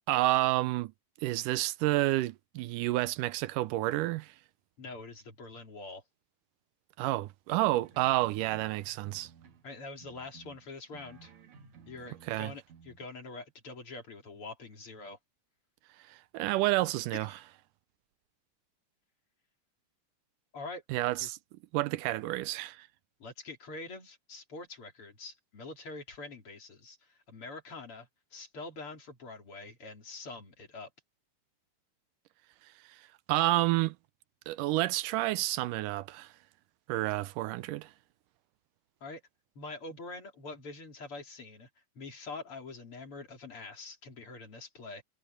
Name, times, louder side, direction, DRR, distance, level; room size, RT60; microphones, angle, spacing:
voice 1, 0.1-0.9 1.2-4.3 7.0-9.3 12.3-12.5 16.1-17.3 20.9-21.4 21.7-22.9 32.9-33.0 33.3-34.0 34.5-36.3 36.9-37.9, right 17 dB, 85° right, 2.2 m, -29 dB
voice 2, 4.8-6.0 9.6-11.3 11.9-15.2 17.1-17.3 20.5-20.8 21.2-21.3 23.2-30.9 39.0-39.2 39.6-41.7 42.0-45.0, left 3 dB, 45° left, 3.8 m, -45 dB
sound 1, 9.1-9.7 10.0-12.4 12.7-13.0, right 6 dB, 65° right, 3.1 m, -56 dB
omnidirectional pair, 3.6 m